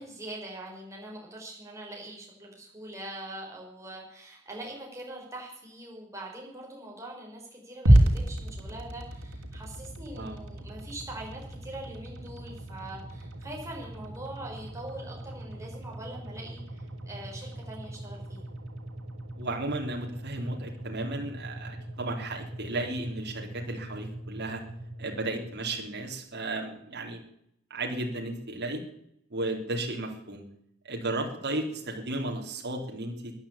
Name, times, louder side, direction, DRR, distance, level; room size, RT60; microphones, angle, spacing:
voice 1, 0.0-18.4, right 1 dB, 15° right, -2 dB, 6.1 m, -43 dB
sound 1, 7.9-26.1, right 1 dB, 80° right, 3.1 m, -32 dB
voice 2, 19.4-24.6 25.0-27.2 27.7-28.8 29.3-30.4 30.8-33.3, right 2 dB, 55° right, 1 dB, 3.6 m, -34 dB
14.5 x 10.5 x 8.7 m, 0.74 s
head